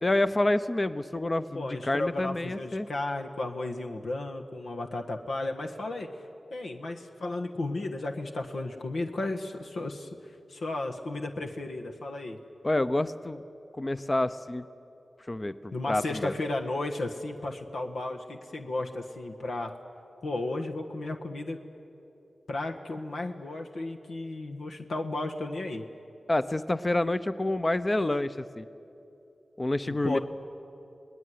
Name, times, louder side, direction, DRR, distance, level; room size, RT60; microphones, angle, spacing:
voice 1, 0.0-2.9 12.6-13.4 13.8-14.7 15.3-16.3 26.3-28.7 29.6-30.2, left 1 dB, 30° left, 13 dB, 0.8 m, -28 dB
voice 2, 1.5-6.1 6.5-10.2 10.5-12.4 15.7-19.7 20.2-21.6 22.5-25.9 29.9-30.2, left 2 dB, 85° left, 3 dB, 1.5 m, -34 dB
26.0 x 19.0 x 9.6 m, 2.9 s
cardioid pair, 50°, 0 cm